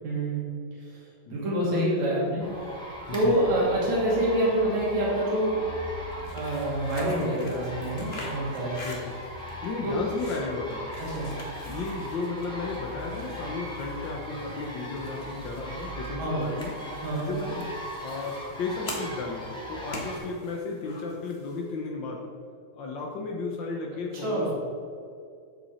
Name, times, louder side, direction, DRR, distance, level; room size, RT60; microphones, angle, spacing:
voice 1, 0.0-2.7 3.1-5.7 6.3-8.8 9.8-10.0 11.0-11.3 16.2-16.6 17.0-17.4 24.1-24.5, right 1 dB, 65° right, -6 dB, 4.1 m, -27 dB
voice 2, 1.7-2.1 3.1-3.3 8.8-9.2 9.6-10.9 11.7-16.7 17.2-17.7 18.0-22.2 22.7-24.6, left 3 dB, 75° left, -1 dB, 1.0 m, -34 dB
sound 1, 2.4-20.2, equal, ahead, 1.2 m, -39 dB
sound 2, 6.1-21.7, left 2 dB, 35° left, 0.9 m, -46 dB
11.5 x 7.7 x 4.3 m, 2.4 s
omnidirectional pair, 3.5 m